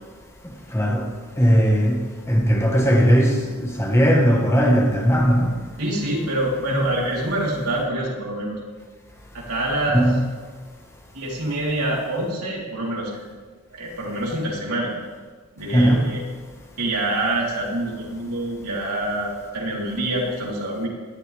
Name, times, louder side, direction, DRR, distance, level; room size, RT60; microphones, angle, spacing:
voice 1, 0.7-1.0 1.4-2.0 2.3-5.5 9.9-10.3 15.7-16.1, equal, 10° left, 1.5 m, -18 dB
voice 2, 5.8-8.6 9.3-10.0 11.1-13.1 13.7-14.9 15.6-16.2 16.8-20.9, right 1 dB, 85° right, 3.9 m, -26 dB
18.0 x 12.5 x 3.5 m
head